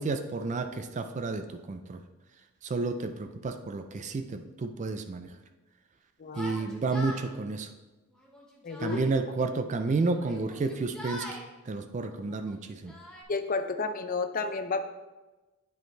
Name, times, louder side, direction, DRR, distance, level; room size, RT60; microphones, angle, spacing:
voice 1, 0.0-2.0 2.6-5.3 6.4-7.7 8.8-11.3 11.7-12.9, right 3 dB, 35° right, 7 dB, 0.3 m, -31 dB
voice 2, 6.2-6.6 8.6-9.0 13.3-14.8, left 4 dB, 40° left, 8 dB, 0.5 m, -31 dB
Yell, 6.3-7.3 8.1-9.1 10.1-11.4 12.3-13.2, equal, 5° left, 1.0 m, -43 dB
9.3 x 5.1 x 3.2 m, 1.2 s
head